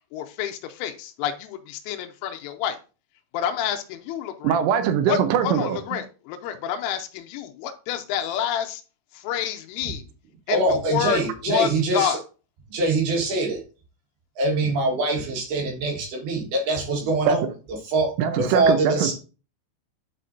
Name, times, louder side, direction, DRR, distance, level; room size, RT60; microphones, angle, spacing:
voice 1, 0.1-2.8 3.3-4.6 5.1-5.2 5.4-8.8 9.1-10.0 10.5-11.2 11.5-12.2, left 9 dB, 85° left, 3.2 m, -28 dB
voice 2, 4.4-5.8 17.3-17.4 18.2-19.1, right 8 dB, 85° right, 3.2 m, -22 dB
voice 3, 10.5-12.2 12.7-13.6 14.4-17.4 17.9-18.1 18.4-19.1, right 2 dB, 65° right, 3.0 m, -23 dB
11.0 x 4.2 x 2.6 m
omnidirectional pair, 5.7 m